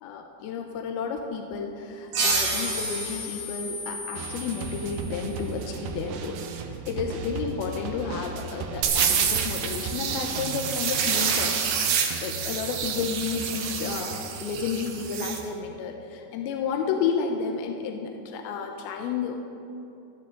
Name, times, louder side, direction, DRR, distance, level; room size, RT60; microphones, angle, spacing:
voice 1, 0.0-11.6 12.1-19.5, left 6 dB, 75° left, 3 dB, 2.4 m, -31 dB
sound 1, 2.1-5.4, right 2 dB, 50° right, 3.4 m, -30 dB
sound 2, 4.2-15.5, right 5 dB, 90° right, 1.8 m, -37 dB
sound 3, 8.8-15.4, right 7 dB, 65° right, 2.4 m, -27 dB
26.0 x 9.7 x 3.9 m, 2.9 s
omnidirectional pair, 5.0 m